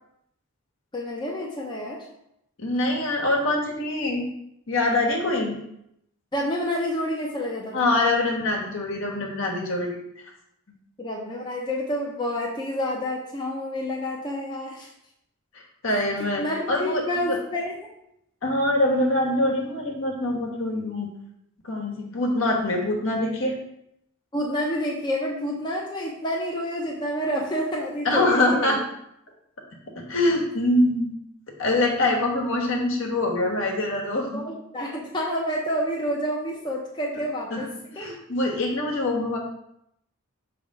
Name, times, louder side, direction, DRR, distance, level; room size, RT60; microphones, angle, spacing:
voice 1, 0.9-2.1 6.3-8.1 11.0-14.9 16.4-17.8 24.3-28.7 34.3-38.1, equal, 20° left, -2 dB, 0.7 m, -29 dB
voice 2, 2.6-4.2 4.7-5.6 7.7-10.0 15.8-17.0 18.4-21.1 21.6-23.6 28.0-28.8 29.9-31.1 31.6-34.4 37.5-37.6 38.0-39.4, left 1 dB, 65° left, -1 dB, 1.3 m, -24 dB
6.4 x 3.4 x 4.8 m, 0.78 s
head